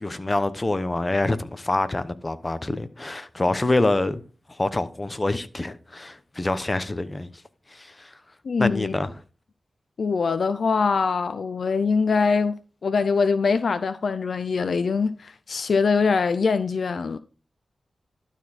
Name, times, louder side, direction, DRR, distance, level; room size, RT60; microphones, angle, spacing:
voice 1, 0.0-4.2 4.5-7.3 7.7-8.1 8.6-9.2, left 2 dB, 30° left, 0.9 m, -26 dB
voice 2, 8.4-8.9 10.0-12.5 12.8-17.2, left 5 dB, 70° left, 0.5 m, -23 dB
12.0 x 4.4 x 4.1 m
cardioid pair, 55°, 0 cm